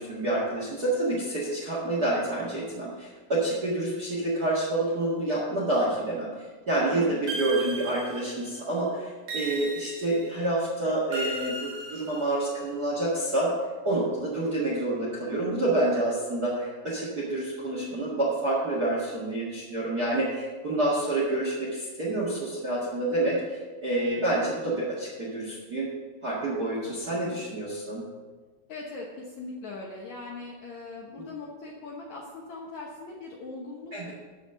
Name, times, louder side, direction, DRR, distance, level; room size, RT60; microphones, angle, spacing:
voice 1, 0.0-6.3 6.7-13.5 13.8-25.9 26.2-28.0 31.1-31.2 33.9-34.1, right 2 dB, 40° right, -5 dB, 1.4 m, -28 dB
voice 2, 6.8-7.2 28.7-33.9, left 3 dB, 70° left, -2 dB, 1.9 m, -40 dB
sound 1, 7.3-8.6 9.3-10.4 11.1-12.6, right 2 dB, 65° right, 1.4 m, -36 dB
12.0 x 4.1 x 6.8 m, 1.3 s
omnidirectional pair, 4.4 m